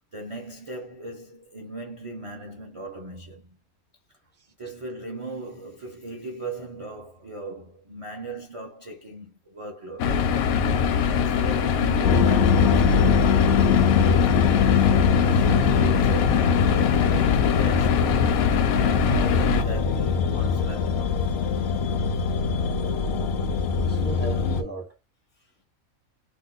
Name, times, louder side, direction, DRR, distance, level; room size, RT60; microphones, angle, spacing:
voice 1, 0.1-3.6 4.6-10.1 10.8-13.8 14.6-21.2 25.4-25.5, right 2 dB, 55° right, 0.3 m, -38 dB
sound 1, 10.0-19.6, left 7 dB, 80° left, 1.0 m, -23 dB
sound 2, 12.0-24.6, left 5 dB, 65° left, 0.6 m, -22 dB
voice 2, 22.7-23.1 23.8-25.0, right 2 dB, 15° left, 0.4 m, -37 dB
2.6 x 2.2 x 3.7 m
omnidirectional pair, 1.5 m